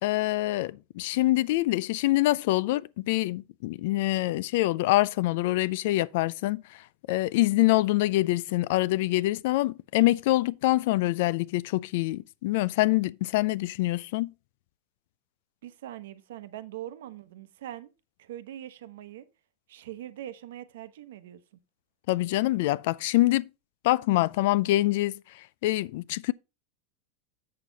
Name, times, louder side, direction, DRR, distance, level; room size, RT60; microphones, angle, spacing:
voice 1, 0.0-6.8 7.1-14.3 22.1-23.5 23.8-25.2 25.6-26.3, left 17 dB, 50° left, 0.3 m, -25 dB
voice 2, 15.6-17.9 18.2-19.3 19.7-21.4, right 12 dB, 75° right, 0.9 m, -42 dB
7.6 x 6.5 x 3.9 m
supercardioid pair, 180°, 0 cm